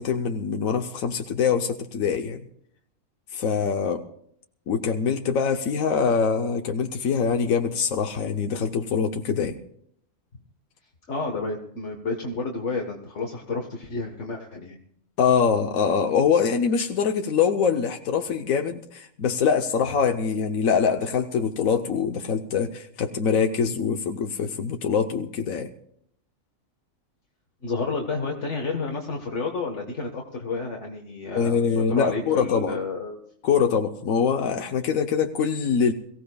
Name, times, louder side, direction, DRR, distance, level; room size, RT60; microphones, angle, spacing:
voice 1, 0.0-2.4 3.3-4.0 4.7-9.6 15.2-25.7 31.3-32.8 33.4-35.9, left 6 dB, 90° left, 5 dB, 1.3 m, -24 dB
voice 2, 11.1-14.8 27.6-33.2, left 3 dB, 60° left, 2 dB, 1.8 m, -30 dB
23.0 x 16.0 x 2.3 m, 0.68 s
omnidirectional pair, 1.4 m